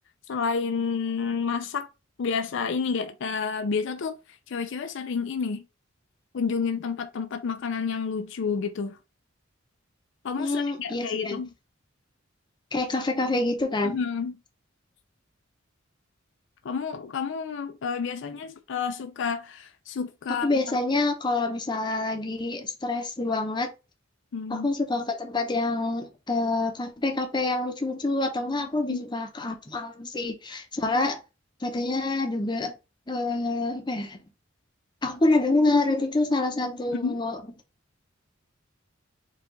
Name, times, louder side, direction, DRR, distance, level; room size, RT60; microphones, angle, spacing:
voice 1, 0.3-1.9 2.2-4.2 4.5-5.6 6.3-9.0 10.2-11.5 13.8-14.4 16.6-20.5 24.3-24.7 28.9-29.0 36.9-37.2, left 5 dB, 65° left, 0.4 m, -30 dB
voice 2, 10.4-11.4 12.7-14.0 20.3-23.7 24.5-31.2 31.6-32.7 33.1-34.2 35.0-37.4, left 2 dB, 20° left, 0.7 m, -27 dB
4.6 x 2.4 x 3.8 m
head